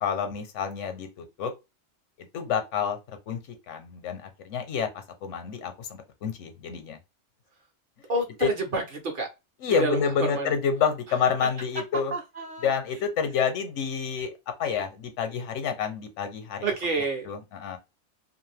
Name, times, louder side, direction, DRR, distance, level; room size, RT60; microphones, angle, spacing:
voice 1, 0.0-1.5 2.3-3.4 3.7-4.9 5.2-7.0 8.4-8.5 9.6-12.1 12.6-14.3 14.6-16.6 17.2-17.8, left 6 dB, 80° left, 1.0 m, -28 dB
voice 2, 8.1-9.3 9.7-10.0 10.3-10.5 12.1-12.7 16.6-17.3, right 2 dB, 55° right, 0.7 m, -29 dB
2.5 x 2.5 x 3.2 m
omnidirectional pair, 1.2 m